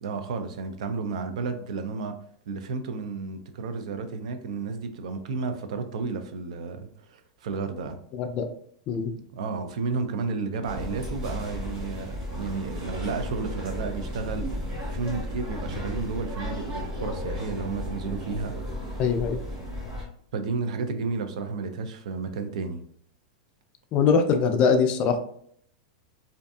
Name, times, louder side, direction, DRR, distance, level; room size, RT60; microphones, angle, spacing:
voice 1, 0.0-2.2 2.5-8.0 9.1-18.6 18.8-18.9 20.3-22.8, right 4 dB, 70° right, 0.4 m, -32 dB
voice 2, 8.1-8.5 8.9-9.1 19.0-19.4 23.9-25.2, left 5 dB, 30° left, 0.3 m, -22 dB
sound 1, 10.6-20.0, left 1 dB, 35° right, 1.0 m, -34 dB
2.5 x 2.5 x 2.2 m
supercardioid pair, 150°, 4 cm